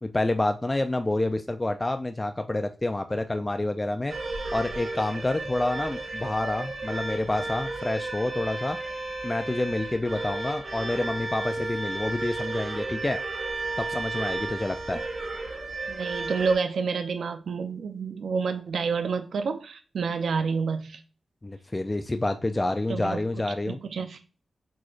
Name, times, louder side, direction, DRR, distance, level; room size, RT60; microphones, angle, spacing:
voice 1, 0.0-4.1 4.5-8.8 9.2-13.2 13.8-15.0 21.4-23.8, left 2 dB, 20° left, 0.3 m, -28 dB
sound 1, 4.1-16.6, right 2 dB, 55° right, 1.8 m, -33 dB
voice 2, 15.9-21.0 22.9-23.2 23.7-24.2, right 5 dB, 85° right, 0.5 m, -29 dB
6.1 x 3.1 x 2.4 m
wide cardioid pair, 115°, 0 cm